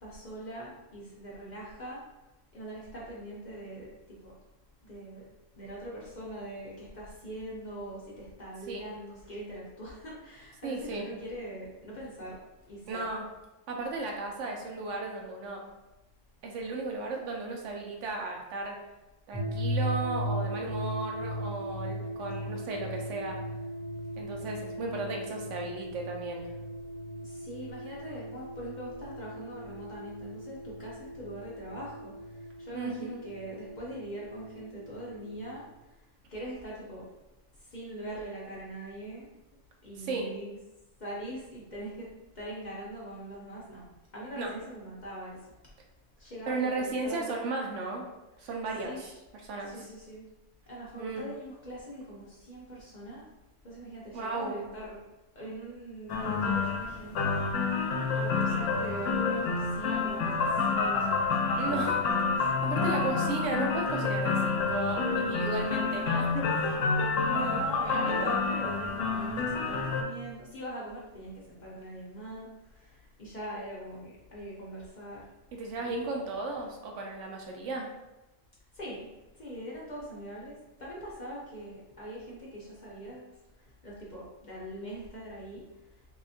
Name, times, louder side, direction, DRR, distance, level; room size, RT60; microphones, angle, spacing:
voice 1, 0.0-2.0 2.5-3.9 4.2-4.3 4.8-5.2 5.6-12.4 12.7-13.0 27.2-35.7 36.3-37.0 37.6-39.3 39.8-40.6 41.0-42.1 42.3-43.9 44.1-45.4 46.2-47.4 48.4-48.5 48.8-49.2 49.6-50.2 50.7-53.2 53.6-55.0 55.3-57.8 58.1-61.3 61.7-63.6 65.5-66.3 67.4-75.2 75.8-76.2 78.7-79.1 79.3-83.3 83.8-85.6, right 1 dB, 45° left, -6 dB, 0.6 m, -42 dB
voice 2, 10.6-11.1 12.9-13.2 13.7-15.6 16.4-18.7 19.3-23.4 24.2-26.5 32.7-33.2 40.0-40.3 44.4-44.5 46.5-48.0 48.4-49.1 49.4-49.7 51.0-51.3 54.1-54.7 61.6-62.0 62.6-66.7 67.3-67.7 75.5-77.9, right 3 dB, 70° right, 0 dB, 0.9 m, -35 dB
sound 1, 19.3-35.5, equal, 45° right, 0.9 m, -38 dB
sound 2, 56.1-70.0, left 4 dB, 75° left, 0.9 m, -28 dB
3.2 x 2.7 x 2.6 m, 1.0 s
omnidirectional pair, 1.3 m